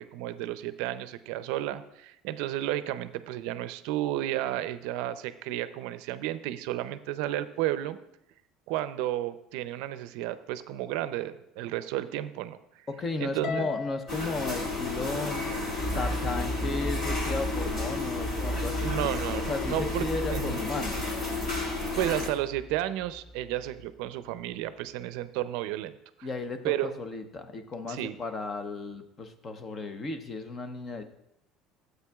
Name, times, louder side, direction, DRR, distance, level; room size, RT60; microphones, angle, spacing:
voice 1, 0.0-8.0 8.7-12.6 13.2-13.7 18.8-20.6 22.0-25.9 26.2-26.3 26.6-26.9 27.9-28.1, right 13 dB, 80° right, 13 dB, 0.5 m, -32 dB
voice 2, 12.9-15.5 15.9-21.0 26.2-31.0, left 3 dB, 30° left, 8 dB, 0.8 m, -35 dB
Harp, 13.4-15.9, left 7 dB, 65° left, 0.4 m, -38 dB
sound 1, 14.1-22.3, left 3 dB, 50° left, 3.9 m, -32 dB
sound 2, 15.8-23.9, equal, ahead, 0.4 m, -36 dB
13.0 x 8.0 x 2.4 m, 0.80 s
cardioid pair, 130°, 0 cm